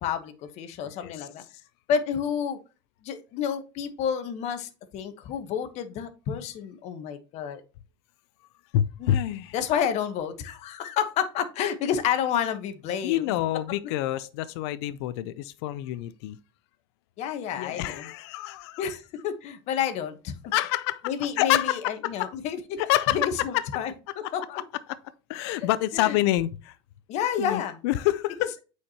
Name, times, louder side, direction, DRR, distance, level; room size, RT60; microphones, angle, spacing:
voice 1, 0.0-1.4 1.9-2.6 3.0-7.6 9.0-9.1 9.5-13.3 17.2-18.1 18.8-20.3 21.0-22.8 23.1-24.6 25.6-26.2 27.1-27.8 28.4-28.5, left 8 dB, 55° left, 1.2 m, -30 dB
voice 2, 8.7-9.5 13.0-16.4 17.6-18.8 20.5-21.0 21.4-21.8 22.0-22.3 22.8-23.2 23.5-23.6 25.3-26.7 27.4-28.5, left 14 dB, 75° left, 0.5 m, -27 dB
8.3 x 4.6 x 2.8 m
supercardioid pair, 100°, 14 cm